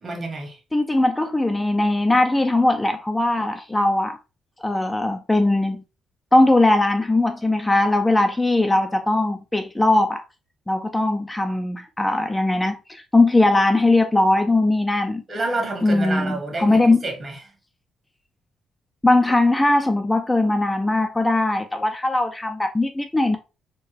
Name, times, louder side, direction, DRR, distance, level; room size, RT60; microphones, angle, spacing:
voice 1, 0.0-0.6 15.3-17.4, right 2 dB, 40° right, 1.6 m, -28 dB
voice 2, 0.7-4.2 4.6-5.8 6.3-10.2 10.7-15.2 15.8-17.0 19.0-23.4, left 2 dB, 15° left, 0.4 m, -20 dB
4.5 x 2.2 x 3.1 m
cardioid pair, 90°, 0 cm